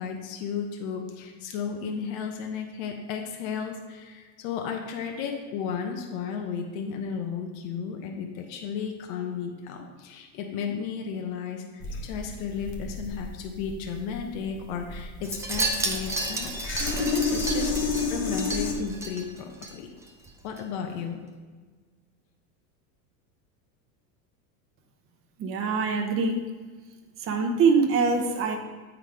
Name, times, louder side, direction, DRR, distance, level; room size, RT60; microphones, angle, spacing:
voice 1, 0.0-19.9 20.4-21.2, left 6 dB, 70° left, 3 dB, 1.0 m, -34 dB
sound 1, 11.8-18.7, left 3 dB, 25° left, 0.8 m, -30 dB
Wind chime, 15.2-19.7 20.0-20.3 20.6-20.7, right 2 dB, 5° right, 0.4 m, -32 dB
voice 2, 25.4-26.5 27.2-28.6, right 4 dB, 30° right, 3 dB, 0.8 m, -24 dB
8.5 x 3.7 x 4.7 m, 1.4 s
supercardioid pair, 140°, 43 cm